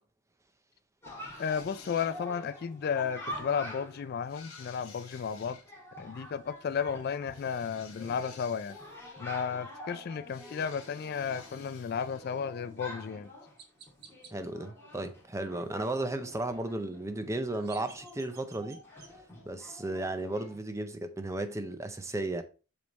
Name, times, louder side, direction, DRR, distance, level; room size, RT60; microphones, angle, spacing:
Chatter, 1.0-20.6, left 1 dB, 10° left, 1.7 m, -47 dB
sound 1, 1.3-2.5 4.3-5.7 7.3-9.3 10.3-12.3, left 5 dB, 70° left, 2.3 m, -53 dB
voice 1, 1.4-5.6 6.0-8.8 9.2-13.3, left 6 dB, 45° left, 0.3 m, -33 dB
Chirp tweet, 12.7-12.8 13.6-14.3 17.3-19.1, right 6 dB, 45° right, 1.0 m, -54 dB
voice 2, 14.3-18.8 19.5-22.4, right 2 dB, 15° right, 0.5 m, -34 dB
7.8 x 3.5 x 4.0 m
head